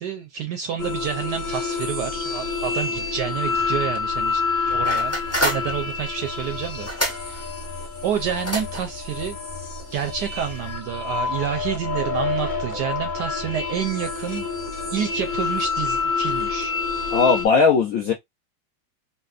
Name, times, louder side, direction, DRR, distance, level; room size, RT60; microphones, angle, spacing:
voice 1, 0.0-4.4 4.7-7.5 8.0-9.4 9.9-14.5 14.9-16.7, right 9 dB, 75° right, 1.0 m, -29 dB
sound 1, 0.8-17.5, left 4 dB, 45° left, 1.3 m, -28 dB
sound 2, 4.8-10.8, equal, 15° left, 0.4 m, -31 dB
voice 2, 17.1-18.1, left 5 dB, 70° left, 0.8 m, -18 dB
4.1 x 2.2 x 2.4 m
omnidirectional pair, 2.2 m